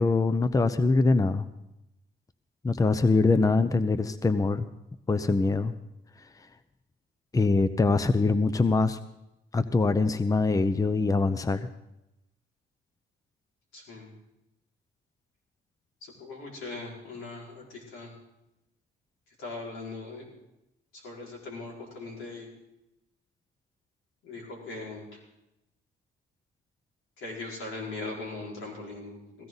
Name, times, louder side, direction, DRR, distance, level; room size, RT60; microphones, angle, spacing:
voice 1, 0.0-1.4 2.6-4.7 5.1-5.7 7.3-9.0 9.5-11.7, left 3 dB, 15° left, 12 dB, 0.7 m, -23 dB
voice 2, 13.7-14.1 16.0-18.1 19.4-20.3 20.9-22.5 24.2-25.2 27.2-29.5, left 3 dB, 85° left, -3 dB, 5.4 m, -40 dB
17.0 x 15.5 x 4.0 m, 0.90 s
cardioid pair, 90°, 20 cm